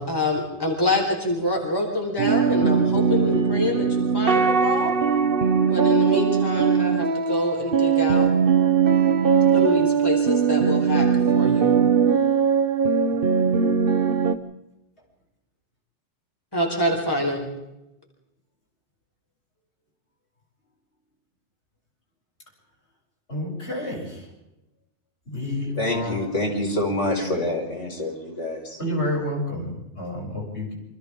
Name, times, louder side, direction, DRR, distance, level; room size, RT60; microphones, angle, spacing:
voice 1, 0.0-5.0 5.7-8.3 9.5-11.8 16.5-17.4, left 1 dB, 20° left, 0 dB, 4.6 m, -26 dB
sound 1, 2.2-14.4, right 6 dB, 50° right, 1.2 m, -20 dB
voice 2, 23.3-24.3 25.3-26.2 28.8-30.7, left 1 dB, 65° left, -2 dB, 8.3 m, -29 dB
voice 3, 25.8-28.8, left 1 dB, 85° left, 0 dB, 6.0 m, -26 dB
28.5 x 25.5 x 3.8 m, 0.92 s
omnidirectional pair, 1.2 m